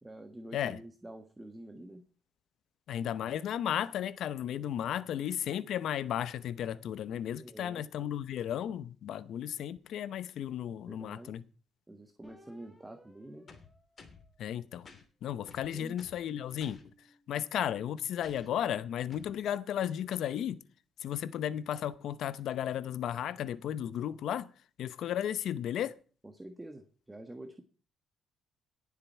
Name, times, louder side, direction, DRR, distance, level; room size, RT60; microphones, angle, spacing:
voice 1, 0.0-2.0 7.3-7.8 10.8-11.3 11.9-13.5 15.6-16.1 26.2-27.6, right 1 dB, 15° right, 1.5 m, -48 dB
voice 2, 2.9-11.4 14.4-14.9 15.2-16.8 17.3-20.6 21.0-24.5 24.8-25.9, left 10 dB, 75° left, 0.7 m, -34 dB
sound 1, 12.2-14.9 15.5-18.0, left 1 dB, 5° left, 4.1 m, -64 dB
sound 2, 13.5-14.3 14.8-15.0 15.5-16.2 16.6-16.8 18.2-18.5 19.1-19.3, left 4 dB, 45° left, 2.8 m, -53 dB
18.0 x 7.4 x 4.6 m
cardioid pair, 90°, 0 cm